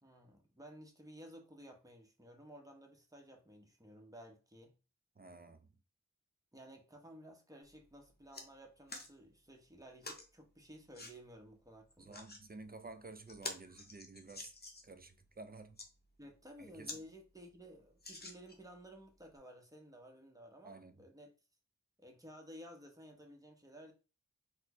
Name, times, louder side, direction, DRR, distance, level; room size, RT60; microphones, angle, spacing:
voice 1, 0.0-4.8 6.5-12.2 16.2-21.3 22.0-23.9, equal, 10° right, 0.8 m, -55 dB
voice 2, 5.2-5.7 12.0-14.5 14.8-15.8 16.6-16.9 20.6-21.1, right 3 dB, 30° right, 0.4 m, -52 dB
sound 1, 7.6-7.8 8.1-8.5 8.9-9.1 10.0-10.3 10.9-11.1 11.9-12.4 12.9-13.0 13.3-15.0 15.6-15.9 16.4-16.5 16.8-17.0 17.4-17.5 18.0-18.7 19.4-19.5, left 2 dB, 30° left, 0.8 m, -47 dB
4.1 x 2.1 x 2.9 m
wide cardioid pair, 45°, 32 cm